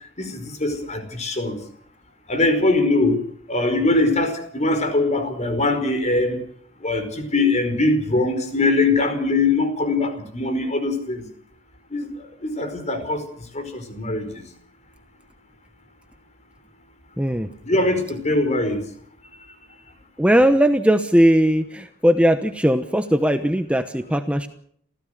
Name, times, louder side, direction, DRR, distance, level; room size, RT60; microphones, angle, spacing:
voice 1, 0.2-1.6 2.3-3.2 3.5-6.4 6.8-11.2 11.9-12.1 12.4-13.2 13.5-14.4 17.6-18.8, left 2 dB, 35° left, 8 dB, 4.9 m, -22 dB
voice 2, 17.2-17.5 20.2-24.5, equal, 5° right, 8 dB, 1.0 m, -18 dB
28.0 x 16.0 x 6.5 m, 0.63 s
head